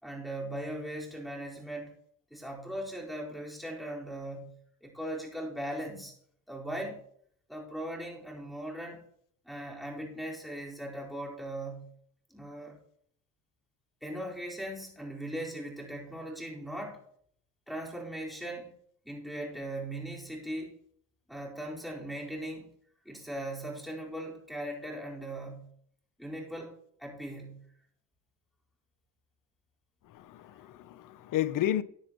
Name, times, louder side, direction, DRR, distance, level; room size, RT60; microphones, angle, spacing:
voice 1, 0.0-1.9 2.3-6.1 6.5-7.0 7.5-9.0 9.4-11.9 12.3-12.8 14.0-17.0 17.7-18.8 19.0-20.8 21.3-22.7 23.0-25.7 26.2-27.7, right 1 dB, ahead, 4.5 m, -39 dB
voice 2, 30.1-31.8, left 12 dB, 55° left, 0.8 m, -31 dB
14.5 x 9.9 x 3.0 m
supercardioid pair, 90°, 39 cm